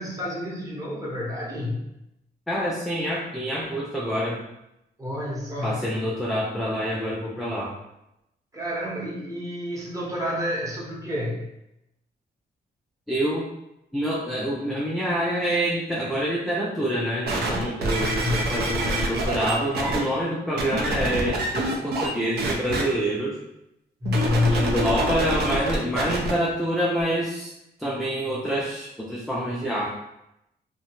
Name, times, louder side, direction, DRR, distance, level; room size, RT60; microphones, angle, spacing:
voice 1, 0.0-1.9 5.0-5.8 8.5-11.5 18.0-18.7 24.0-24.8, left 2 dB, 20° right, -4 dB, 0.8 m, -28 dB
voice 2, 2.5-4.5 5.6-7.8 13.1-13.5 13.9-23.4 24.5-27.5 27.8-29.9, equal, ahead, -5 dB, 0.3 m, -27 dB
Is This All This Does, 17.3-20.0 20.6-22.1 22.4-22.8 24.0-26.3 27.0-27.1, right 1 dB, 65° right, 0.5 m, -26 dB
2.8 x 2.1 x 2.9 m, 0.86 s
cardioid pair, 110°, 18 cm